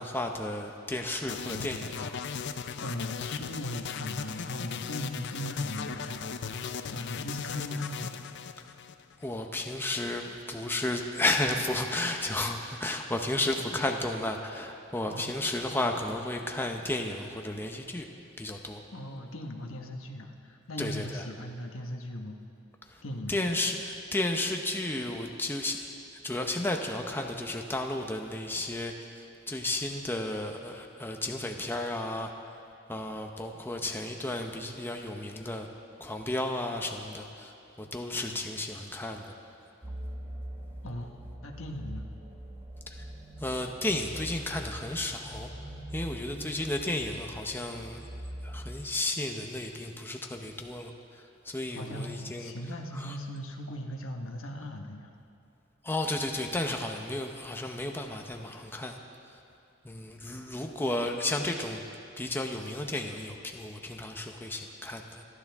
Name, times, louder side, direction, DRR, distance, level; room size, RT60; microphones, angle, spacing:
voice 1, 0.0-2.1 9.2-18.1 18.4-18.8 20.8-21.2 22.9-23.0 23.3-25.9 26.2-32.3 32.9-35.7 36.0-37.5 37.8-39.4 42.9-43.1 43.4-45.5 45.9-48.0 48.4-52.5 52.9-53.2 55.8-59.0 59.8-61.8 62.2-65.2, left 1 dB, 10° left, 3 dB, 0.7 m, -33 dB
sound 1, 1.3-9.4, left 6 dB, 60° left, 0.5 m, -37 dB
voice 2, 2.8-6.3 6.9-8.1 15.1-15.4 18.9-22.4 23.0-23.4 38.3-38.4 40.8-41.1 41.4-42.1 51.8-55.1, left 1 dB, 75° left, 3 dB, 1.3 m, -38 dB
sound 2, 39.8-48.8, right 1 dB, 20° right, 1.6 m, -42 dB
26.5 x 11.5 x 3.6 m, 2.6 s
head